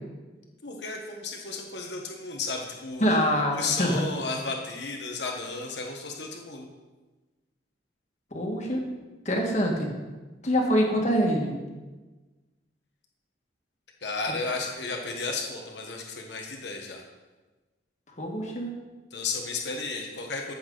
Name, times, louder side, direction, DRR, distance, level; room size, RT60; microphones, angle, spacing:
voice 1, 0.6-6.7 14.0-17.0 19.1-20.5, left 3 dB, 70° left, 1 dB, 1.3 m, -33 dB
voice 2, 3.0-4.0 8.3-8.8 9.3-9.9 10.4-11.5 18.2-18.7, equal, 40° left, 0 dB, 1.8 m, -25 dB
14.5 x 7.1 x 4.0 m, 1.2 s
head